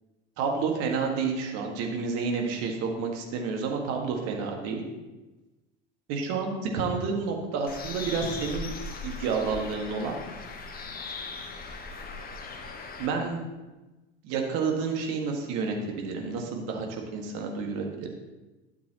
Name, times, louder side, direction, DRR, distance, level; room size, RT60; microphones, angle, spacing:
voice 1, 0.4-4.8 6.1-8.7 9.0-10.2 11.7-11.8 13.0-13.5 14.2-18.1, right 5 dB, 55° right, 2 dB, 1.8 m, -30 dB
Bird, 7.7-13.1, left 4 dB, 30° left, 1.2 m, -39 dB
12.0 x 7.3 x 3.0 m, 1.1 s
figure-of-eight pair, 70°, 31 cm